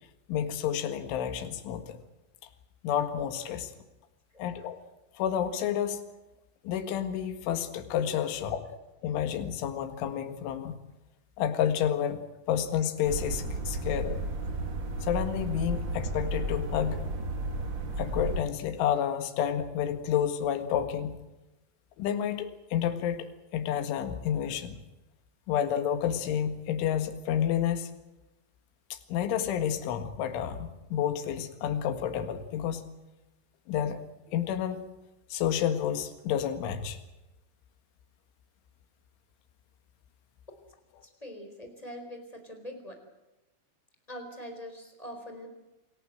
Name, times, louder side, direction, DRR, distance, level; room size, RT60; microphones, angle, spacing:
voice 1, 0.3-2.0 2.8-3.7 4.4-4.8 5.2-6.0 6.7-8.7 9.0-10.8 11.4-14.3 15.0-17.0 18.0-21.2 22.0-23.3 23.5-24.8 25.5-27.9 28.9-32.8 33.7-34.0 34.3-34.9 35.3-37.0, left 9 dB, 70° left, 8 dB, 4.1 m, -30 dB
sound 1, 13.0-18.4, right 2 dB, 45° right, 1.5 m, -33 dB
voice 2, 41.0-43.0 44.1-45.5, equal, 10° left, 4 dB, 3.9 m, -43 dB
27.5 x 18.5 x 7.8 m, 1.0 s
omnidirectional pair, 5.8 m